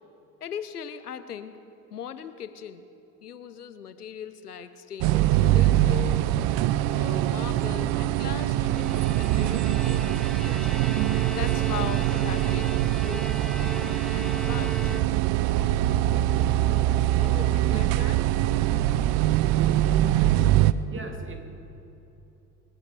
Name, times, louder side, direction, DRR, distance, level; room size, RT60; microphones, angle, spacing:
voice 1, 0.4-1.6 1.9-2.8 3.2-6.3 6.9-10.9 11.3-15.1 17.2-18.3, left 8 dB, 90° left, 13 dB, 0.7 m, -39 dB
sound 1, 5.0-20.7, right 13 dB, 55° right, 0.7 m, -23 dB
Bowed string instrument, 8.5-15.5, equal, ahead, 0.4 m, -40 dB
voice 2, 20.8-21.4, right 2 dB, 25° right, 3 dB, 2.7 m, -38 dB
26.0 x 9.1 x 5.2 m, 2.9 s
figure-of-eight pair, 60°, 45 cm